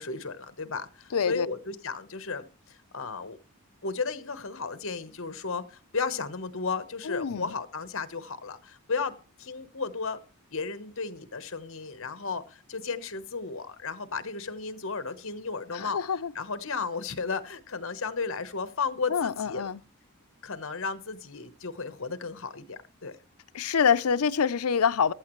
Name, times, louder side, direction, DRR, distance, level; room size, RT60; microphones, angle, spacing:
voice 1, 0.0-3.4 3.8-10.2 10.5-16.0 16.3-19.7 20.4-23.1, left 4 dB, 60° left, 1.1 m, -34 dB
voice 2, 1.1-1.5 7.0-7.5 15.7-16.3 19.1-19.8 23.5-25.1, left 6 dB, 80° left, 0.5 m, -26 dB
15.0 x 12.0 x 3.1 m
head